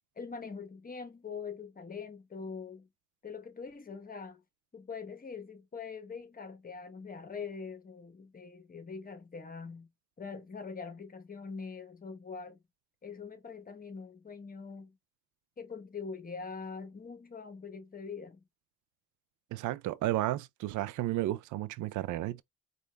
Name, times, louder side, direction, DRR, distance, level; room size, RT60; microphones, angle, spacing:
voice 1, 0.2-2.9 3.2-4.4 4.7-9.9 10.2-12.6 13.0-15.0 15.6-18.4, left 5 dB, 30° left, 1.1 m, -43 dB
voice 2, 19.5-22.4, right 15 dB, 80° right, 0.5 m, -32 dB
4.6 x 2.4 x 3.3 m
cardioid pair, 90°, 30 cm